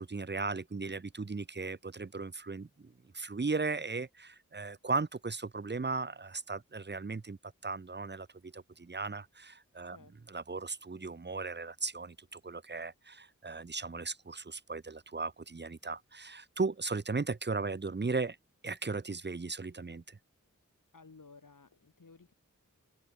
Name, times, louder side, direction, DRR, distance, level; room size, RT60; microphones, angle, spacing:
voice 1, 0.0-7.4 7.6-10.0 10.3-18.4 18.6-20.2, right 4 dB, 35° right, 0.8 m, -37 dB
voice 2, 9.8-10.2 20.9-22.3, left 4 dB, 85° left, 5.5 m, -56 dB
open air
wide cardioid pair, 60°, 31 cm